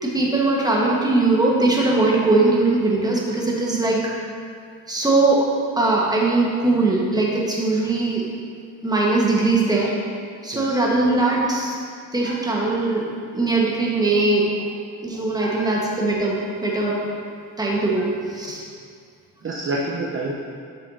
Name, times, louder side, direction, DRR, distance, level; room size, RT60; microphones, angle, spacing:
voice 1, 0.0-4.1 4.9-8.3 8.8-9.9 10.4-11.8 12.1-13.1 13.3-14.7 15.0-17.0 17.6-18.6, right 2 dB, 10° right, -3 dB, 1.4 m, -20 dB
voice 2, 15.4-15.8 19.4-20.3, right 2 dB, 30° right, -4 dB, 0.8 m, -28 dB
7.6 x 6.0 x 2.8 m, 2.2 s
supercardioid pair, 70°, 41 cm